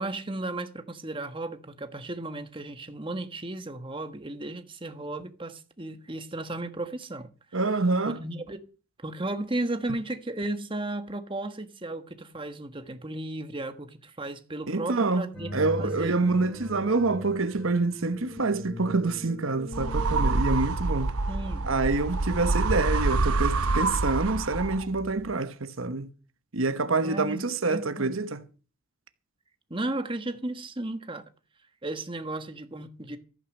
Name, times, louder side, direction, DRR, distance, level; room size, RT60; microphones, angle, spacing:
voice 1, 0.0-7.3 8.0-8.6 9.0-16.2 21.3-21.7 27.0-28.2 29.7-31.2 31.8-33.2, right 2 dB, 25° right, 1.4 m, -34 dB
voice 2, 7.5-8.2 14.7-15.2 15.5-21.1 21.6-26.1 26.5-28.4, right 3 dB, 65° right, 1.1 m, -27 dB
sound 1, 15.3-20.5, left 1 dB, 5° left, 5.3 m, -39 dB
sound 2, 19.7-25.0, right 3 dB, 90° right, 1.0 m, -26 dB
14.5 x 9.3 x 6.5 m
head